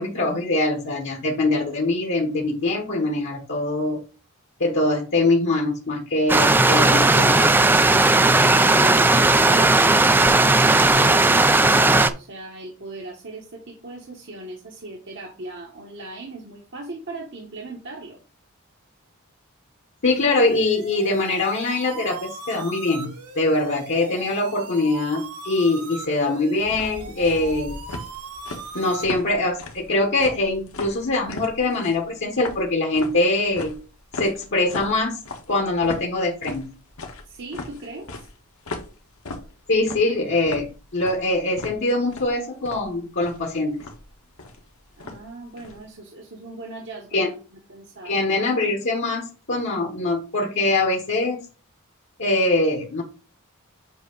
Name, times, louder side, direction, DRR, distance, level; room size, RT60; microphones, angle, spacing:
voice 1, 0.0-4.0 4.6-7.7 20.0-23.1 23.3-27.8 28.7-33.8 34.1-35.2 35.5-36.7 39.7-43.8 47.1-47.3 48.0-51.5 52.2-53.0, left 2 dB, 55° left, 1 dB, 1.2 m, -23 dB
Stream, 6.3-12.1, right 2 dB, 10° right, 0.3 m, -16 dB
voice 2, 8.2-18.2 37.3-38.2 45.0-48.3, right 2 dB, 55° right, 0 dB, 1.2 m, -38 dB
sound 1, 20.0-29.0, right 4 dB, 90° right, 1.3 m, -39 dB
sound 2, 26.6-45.8, left 2 dB, 70° left, 1.4 m, -38 dB
8.1 x 2.9 x 5.3 m, 0.36 s
head